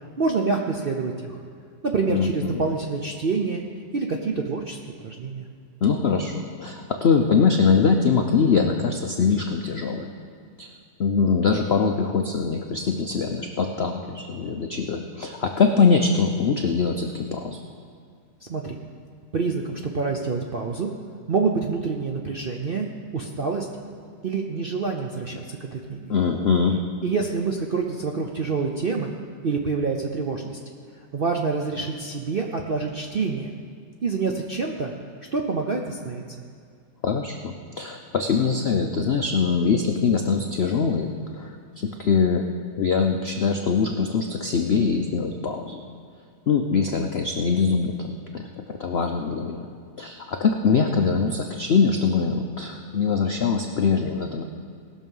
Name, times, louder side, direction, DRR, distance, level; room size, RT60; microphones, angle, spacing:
voice 1, 0.2-1.4 1.8-3.6 3.9-4.8 5.0-5.5 18.4-18.8 19.3-20.9 21.3-22.9 23.1-23.7 24.2-26.1 27.0-29.1 29.4-30.6 31.1-33.5 34.0-34.9 35.3-36.2, right 4 dB, 60° right, 1 dB, 0.6 m, -27 dB
voice 2, 2.1-2.6 5.8-10.1 10.6-10.7 11.0-17.6 26.1-26.8 37.0-41.5 42.0-42.5 42.8-45.8 46.5-48.4 48.7-49.7 50.0-54.4, left 5 dB, 80° left, 4 dB, 0.5 m, -23 dB
18.5 x 6.3 x 5.4 m, 2.2 s
omnidirectional pair, 1.9 m